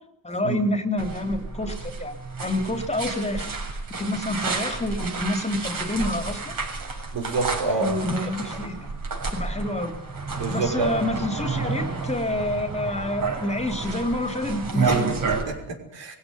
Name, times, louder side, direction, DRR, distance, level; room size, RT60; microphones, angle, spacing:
voice 1, 0.2-3.5 4.0-6.5 7.8-8.9 9.3-10.0 10.5-15.3, left 1 dB, 15° left, 6 dB, 3.0 m, -28 dB
sound 1, 1.0-15.4, right 4 dB, 45° right, 7.1 m, -30 dB
voice 2, 7.1-7.9 10.3-10.9 14.9-15.2 15.4-16.2, right 3 dB, 65° right, 4 dB, 6.2 m, -27 dB
22.0 x 17.0 x 9.7 m, 0.83 s
cardioid pair, 95°, 46 cm